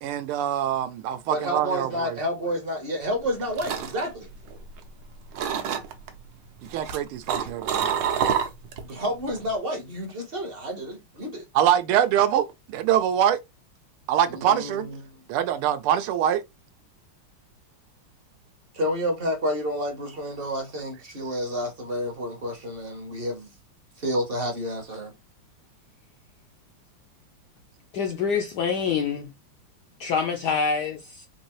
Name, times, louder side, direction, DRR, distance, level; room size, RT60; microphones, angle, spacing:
voice 1, 0.0-2.2 6.7-8.0 11.5-13.4 14.1-14.9 15.3-16.4, right 10 dB, 90° right, 1.5 m, -24 dB
voice 2, 1.3-4.3 8.8-11.4 14.4-15.1 18.7-23.5 24.0-25.1, equal, 45° right, 0.7 m, -30 dB
sound 1, 3.1-5.0 5.3-6.1 6.6-8.9 9.2-9.6, right 8 dB, 70° right, 1.3 m, -28 dB
voice 3, 27.9-29.3 30.0-31.2, left 6 dB, 75° left, 0.9 m, -26 dB
4.6 x 2.7 x 3.0 m
omnidirectional pair, 2.3 m